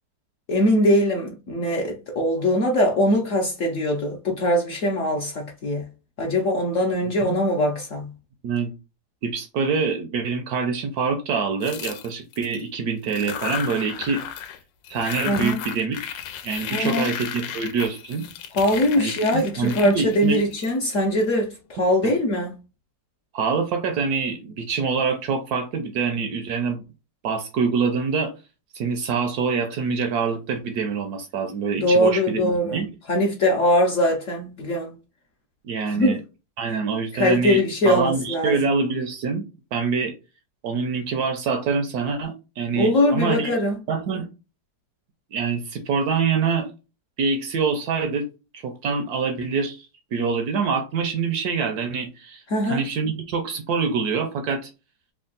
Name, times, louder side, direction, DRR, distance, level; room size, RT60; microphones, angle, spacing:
voice 1, 0.5-5.9 6.2-8.1 15.3-15.6 16.7-17.1 18.5-22.5 31.8-34.9 35.9-36.2 37.1-38.6 42.7-43.8 52.5-52.8, left 1 dB, 60° left, 0.9 m, -22 dB
voice 2, 9.2-14.2 14.9-18.3 19.0-20.4 22.0-22.1 23.3-26.8 27.2-28.3 28.7-32.9 35.6-36.2 36.6-39.4 39.7-40.1 40.6-43.5 43.9-44.3 45.3-46.7 47.2-48.3 48.5-54.7, right 5 dB, 70° right, 1.0 m, -25 dB
sound 1, 11.6-12.6 13.0-14.6 14.8-21.2, left 9 dB, 85° left, 1.3 m, -34 dB
3.5 x 2.3 x 3.8 m
omnidirectional pair, 2.0 m